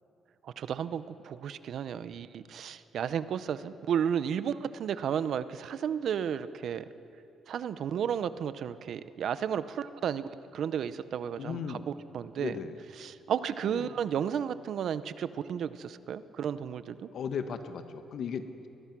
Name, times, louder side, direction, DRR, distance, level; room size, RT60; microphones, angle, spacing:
voice 1, 0.4-6.8 7.5-12.5 13.0-17.1, right 8 dB, 65° right, 14 dB, 0.8 m, -33 dB
voice 2, 11.4-11.9 12.4-12.8 13.6-13.9 17.1-18.7, left 6 dB, 65° left, 9 dB, 1.4 m, -36 dB
21.5 x 20.5 x 6.1 m, 2.7 s
cardioid pair, 90°, 0 cm